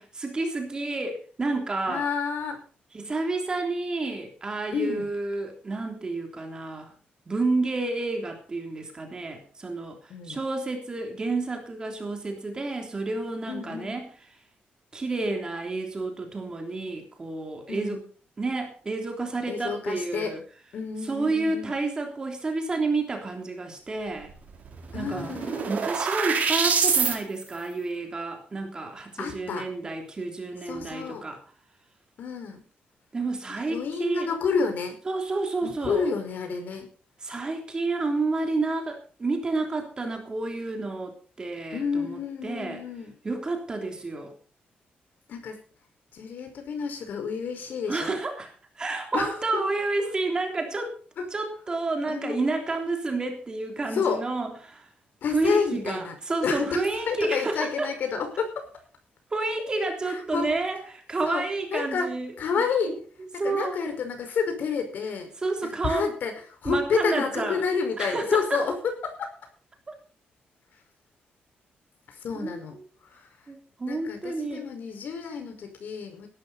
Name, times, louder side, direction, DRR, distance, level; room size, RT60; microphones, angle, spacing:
voice 1, 0.0-2.0 2.9-6.9 7.3-14.1 14.9-18.0 18.4-20.4 21.1-24.3 24.9-25.3 25.7-31.4 33.1-34.3 35.1-36.1 37.2-42.8 43.2-44.3 47.9-51.0 51.3-54.9 55.3-57.9 59.3-62.3 62.9-63.0 63.4-63.8 65.4-66.1 66.6-67.6 68.0-68.6 69.9-70.0 72.4-72.6 73.5-74.6, right 3 dB, 25° right, 3 dB, 3.3 m, -30 dB
voice 2, 1.9-2.6 4.7-5.1 10.1-10.4 13.5-14.0 17.7-18.0 19.5-20.3 20.7-21.8 24.9-25.8 29.2-29.7 30.7-31.2 32.2-32.6 33.6-35.0 35.6-36.9 41.7-43.1 45.3-45.6 46.1-48.2 49.1-49.6 51.2-51.3 52.1-52.4 53.9-54.2 55.2-56.1 56.4-58.7 60.0-60.5 61.2-61.4 61.7-62.1 62.4-63.0 63.3-65.3 65.6-69.3 72.1-72.8 73.0-73.5 73.9-76.3, left 5 dB, 60° left, 5 dB, 5.3 m, -30 dB
sound 1, 24.3-24.4 24.6-27.2, right 5 dB, 45° right, 4.5 m, -25 dB
18.5 x 12.5 x 4.2 m, 0.40 s
wide cardioid pair, 165°, 3 cm